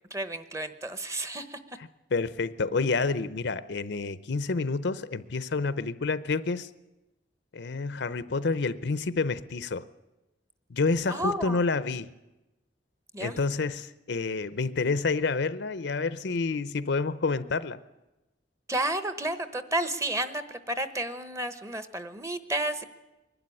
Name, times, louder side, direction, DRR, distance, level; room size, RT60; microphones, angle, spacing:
voice 1, 0.1-1.6 11.1-11.6 13.1-13.4 18.7-22.8, right 1 dB, 15° right, 11 dB, 1.0 m, -31 dB
voice 2, 2.1-6.7 7.5-9.9 10.7-12.1 13.2-17.8, left 4 dB, 65° left, 15 dB, 0.7 m, -28 dB
22.0 x 12.0 x 9.8 m, 1.0 s
head